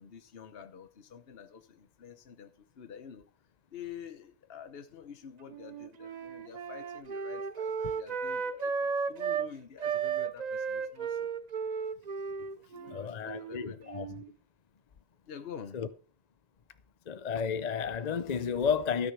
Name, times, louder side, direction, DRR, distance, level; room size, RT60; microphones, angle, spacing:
voice 1, 0.0-3.3 3.7-11.3 12.7-14.1 15.2-15.8, left 8 dB, 65° left, 1.1 m, -48 dB
Wind instrument woodwind instrument, 5.5-9.5 9.8-14.3, right 6 dB, 45° right, 0.7 m, -34 dB
voice 2, 12.9-14.1 15.7-15.9 17.1-19.1, left 6 dB, 45° left, 0.7 m, -32 dB
13.0 x 6.6 x 6.8 m
omnidirectional pair, 1.1 m